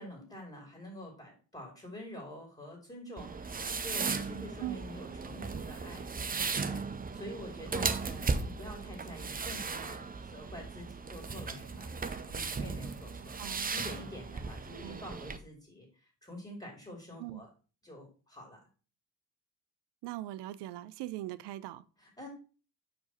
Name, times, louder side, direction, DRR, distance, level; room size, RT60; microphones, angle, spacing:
voice 1, 0.0-13.3 13.7-17.5 17.8-18.6 22.0-22.3, left 1 dB, 15° left, 2.9 m, -47 dB
sound 1, 3.2-15.4, right 4 dB, 20° right, 0.7 m, -36 dB
voice 2, 7.7-8.1 13.4-13.7 14.8-15.0 17.2-17.4 20.0-21.8, right 15 dB, 55° right, 0.6 m, -41 dB
6.4 x 4.6 x 4.0 m
hypercardioid pair, 50°, 49 cm